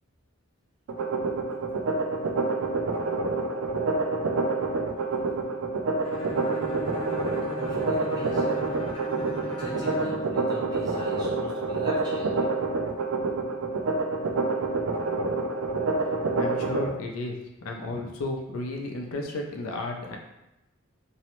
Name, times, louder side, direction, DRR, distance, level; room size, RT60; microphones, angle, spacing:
sound 1, 0.9-16.9, right 3 dB, 75° right, 0.3 m, -27 dB
Bowed string instrument, 6.0-10.3, equal, 25° left, 0.6 m, -38 dB
voice 1, 6.1-6.6 7.6-8.6 9.4-12.5, right 1 dB, 20° right, -6 dB, 0.7 m, -40 dB
voice 2, 16.4-17.4 17.6-20.2, left 2 dB, 85° left, 1 dB, 0.4 m, -33 dB
2.7 x 2.0 x 2.9 m, 0.91 s
head